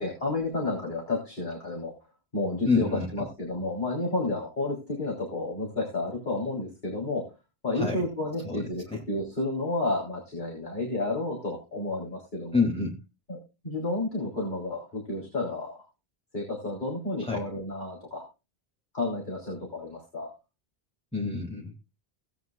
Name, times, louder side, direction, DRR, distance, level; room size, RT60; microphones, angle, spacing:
voice 1, 0.0-1.9 2.3-7.3 7.6-12.6 13.3-13.4 13.6-15.8 16.3-18.2 18.9-20.3, left 2 dB, 50° left, -1 dB, 4.0 m, -31 dB
voice 2, 2.6-3.1 7.7-8.0 8.4-9.0 12.5-13.0 17.2-17.4 21.1-21.7, left 4 dB, 5° left, -1 dB, 2.4 m, -28 dB
18.0 x 9.4 x 2.3 m, 0.28 s
omnidirectional pair, 1.1 m